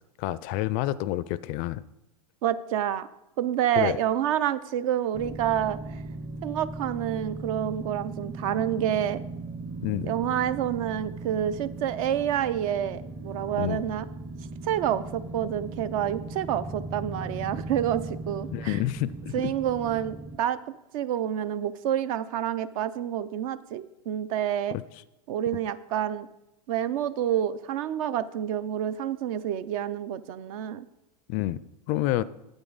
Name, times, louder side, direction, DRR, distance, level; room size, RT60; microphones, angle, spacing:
voice 1, 0.2-1.8 3.8-4.0 9.8-10.1 13.6-13.8 18.5-19.5 24.7-24.8 31.3-31.6 31.9-32.2, left 15 dB, 45° left, 18 dB, 0.4 m, -28 dB
voice 2, 2.4-3.1 3.4-5.8 6.4-9.2 10.0-14.0 14.6-18.8 19.3-20.6 20.9-24.8 25.3-26.3 26.7-30.9, right 10 dB, 60° right, 15 dB, 0.5 m, -28 dB
sound 1, 5.1-20.4, right 3 dB, 10° right, 0.5 m, -38 dB
8.9 x 8.1 x 3.9 m, 0.92 s
hypercardioid pair, 110°, 20 cm